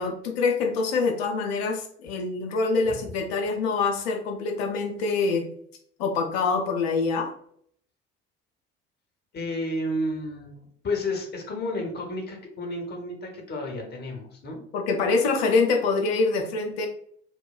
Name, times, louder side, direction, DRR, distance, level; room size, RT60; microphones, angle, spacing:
voice 1, 0.0-5.5 6.0-7.3 14.7-16.9, left 4 dB, 65° left, 3 dB, 0.6 m, -25 dB
voice 2, 9.3-14.6, left 1 dB, 30° left, 2 dB, 0.8 m, -31 dB
2.8 x 2.1 x 2.4 m, 0.62 s
figure-of-eight pair, 55°, 34 cm